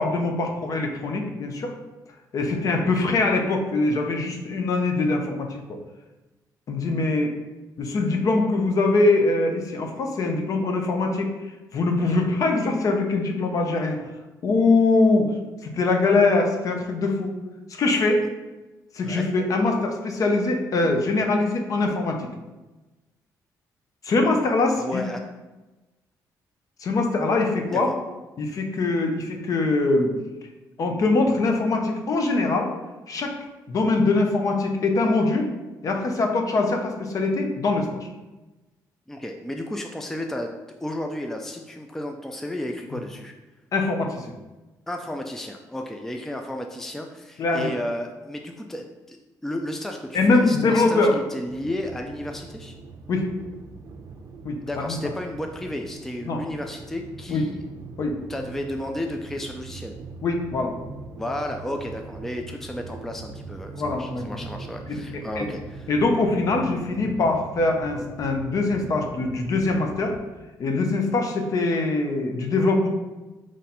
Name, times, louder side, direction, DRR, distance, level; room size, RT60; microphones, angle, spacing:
voice 1, 0.0-1.7 2.3-5.8 6.7-7.3 7.8-11.3 11.7-14.0 14.4-15.3 15.6-17.3 17.7-18.2 18.9-22.3 24.0-25.0 26.8-27.9 28.4-30.1 30.8-32.7 33.1-33.3 33.7-35.5 35.8-38.1 42.9-43.0 43.7-44.3 47.4-47.7 50.1-51.1 53.1-53.2 54.4-54.5 54.9-55.0 56.3-56.4 57.3-57.4 58.0-58.2 60.2-60.7 63.7-64.4 64.9-65.0 65.4-65.5 65.9-70.1 70.6-72.9, left 3 dB, 55° left, 3 dB, 0.7 m, -23 dB
voice 2, 24.3-25.2 27.7-28.0 39.1-40.5 40.8-43.3 44.9-49.2 49.4-52.8 54.6-57.7 58.3-59.9 61.2-65.9, left 1 dB, 5° left, 4 dB, 0.3 m, -33 dB
sound 1, 51.5-70.2, right 4 dB, 55° right, 0.6 m, -41 dB
4.0 x 3.1 x 4.2 m, 1.1 s
cardioid pair, 120°, 7 cm